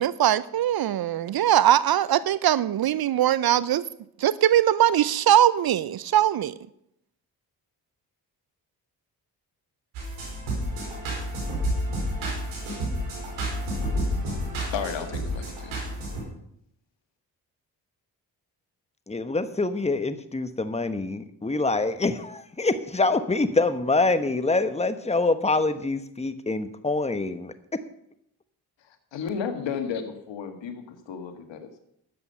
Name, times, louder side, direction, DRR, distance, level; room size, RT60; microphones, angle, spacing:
voice 1, 0.0-3.8 4.2-6.5, right 11 dB, 50° right, 17 dB, 0.6 m, -21 dB
sound 1, 9.9-16.2, equal, 80° right, 5.1 m, -30 dB
voice 2, 14.7-15.8 28.8-31.8, left 6 dB, 65° left, 7 dB, 1.8 m, -33 dB
voice 3, 19.1-27.5, left 3 dB, 15° left, 11 dB, 1.2 m, -25 dB
12.5 x 8.4 x 5.6 m, 0.75 s
hypercardioid pair, 40°, 47 cm